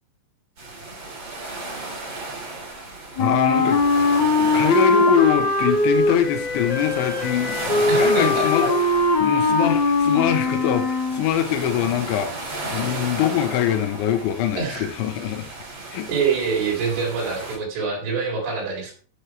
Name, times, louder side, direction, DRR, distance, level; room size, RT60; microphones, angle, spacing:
sound 1, 0.6-17.6, right 2 dB, 30° right, 6.0 m, -34 dB
voice 1, 3.2-3.8 4.4-8.7 9.2-12.3 12.7-15.5 15.9-16.1, left 10 dB, 80° left, 6 dB, 3.5 m, -23 dB
Wind instrument woodwind instrument, 3.2-11.3, left 2 dB, 45° left, 1.5 m, -20 dB
voice 2, 7.9-8.7 14.5-14.9 16.1-18.9, right 5 dB, 85° right, -1 dB, 6.4 m, -25 dB
11.5 x 7.7 x 4.7 m, 0.42 s
omnidirectional pair, 5.4 m